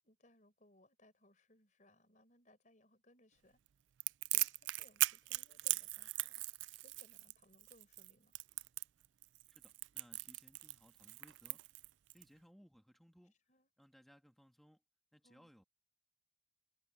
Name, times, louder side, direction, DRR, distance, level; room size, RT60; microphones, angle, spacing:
voice 1, 0.0-3.6 4.3-8.3 13.5-13.7 15.2-15.5, left 1 dB, 45° left, 4.7 m, -68 dB
Crackle, 4.0-12.2, right 18 dB, 85° right, 0.4 m, -39 dB
voice 2, 9.5-11.6 12.1-13.3 13.8-14.8 15.1-15.6, equal, ahead, 2.2 m, -64 dB
head